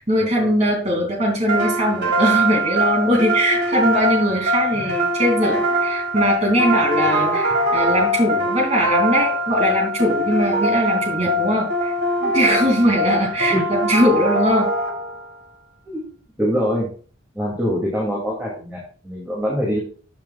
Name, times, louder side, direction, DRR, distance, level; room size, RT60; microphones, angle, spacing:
voice 1, 0.0-11.9 12.2-14.7, equal, 35° right, 0 dB, 2.7 m, -20 dB
sound 1, 1.5-15.3, right 1 dB, 55° right, 1.7 m, -22 dB
voice 2, 7.1-7.4 13.5-13.7 15.8-16.0 16.4-16.9 17.3-19.8, equal, 10° right, -4 dB, 2.5 m, -24 dB
13.0 x 7.3 x 2.4 m, 0.41 s
head